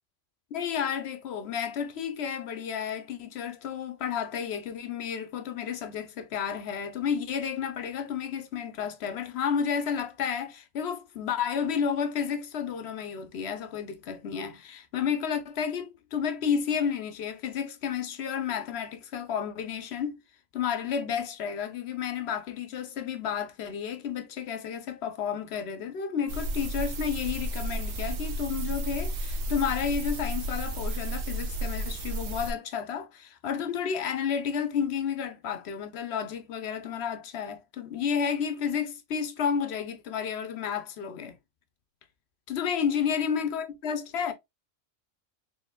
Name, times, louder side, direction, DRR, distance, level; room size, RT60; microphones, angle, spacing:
voice 1, 0.5-20.2 20.5-41.4 42.5-44.3, left 7 dB, 65° left, 0.9 m, -31 dB
sound 1, 26.3-32.5, right 1 dB, 65° right, 1.1 m, -32 dB
4.3 x 3.7 x 2.2 m
omnidirectional pair, 1.3 m